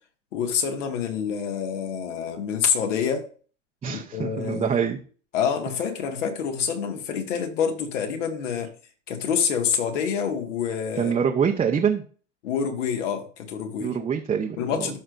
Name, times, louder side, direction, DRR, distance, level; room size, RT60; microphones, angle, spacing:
voice 1, 0.3-3.3 3.9-4.7 5.3-8.7 9.1-11.1 12.4-13.9 14.6-15.0, left 7 dB, 70° left, 2.0 m, -27 dB
voice 2, 3.8-5.0 11.0-12.0 13.8-15.0, right 7 dB, 15° right, 0.8 m, -25 dB
13.5 x 5.1 x 2.6 m
hypercardioid pair, 115°, 38 cm